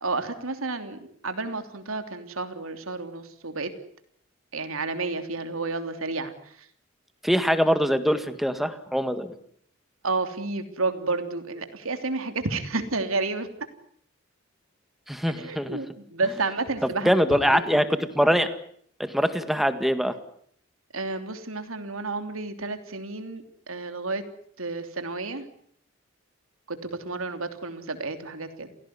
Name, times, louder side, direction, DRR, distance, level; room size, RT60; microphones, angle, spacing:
voice 1, 0.0-3.7 4.5-6.3 10.0-13.5 15.4-17.8 20.9-24.2 24.6-25.4 26.7-28.7, right 3 dB, 90° right, 8 dB, 3.2 m, -31 dB
voice 2, 7.2-9.3 15.1-15.8 17.0-18.5 19.0-20.2, equal, ahead, 10 dB, 1.8 m, -23 dB
28.5 x 17.0 x 9.6 m, 0.65 s
head